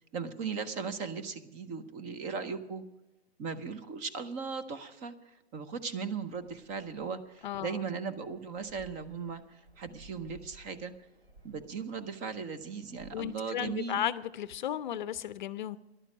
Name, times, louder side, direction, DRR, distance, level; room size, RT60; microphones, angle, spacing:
voice 1, 0.1-2.8 3.4-10.9 11.4-14.0, right 5 dB, 25° right, 10 dB, 0.8 m, -38 dB
sound 1, 6.1-13.3, right 2 dB, 65° right, 6.0 m, -58 dB
voice 2, 7.4-7.7 13.1-15.8, left 11 dB, 45° left, 15 dB, 0.6 m, -34 dB
13.0 x 11.0 x 6.1 m, 0.98 s
hypercardioid pair, 135°, 32 cm